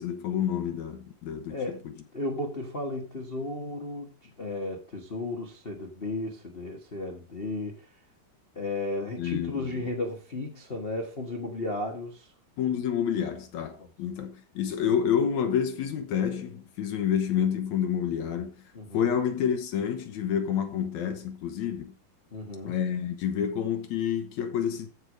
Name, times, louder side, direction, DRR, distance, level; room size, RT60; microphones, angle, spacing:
voice 1, 0.0-1.9 9.2-9.8 12.6-18.5 18.9-21.9 22.7-24.9, left 8 dB, 65° left, 2.2 m, -29 dB
voice 2, 1.5-7.9 8.5-12.3 13.8-13.9 18.7-19.1 22.3-22.8, left 2 dB, 50° left, 0.6 m, -34 dB
14.0 x 4.9 x 5.1 m
omnidirectional pair, 4.0 m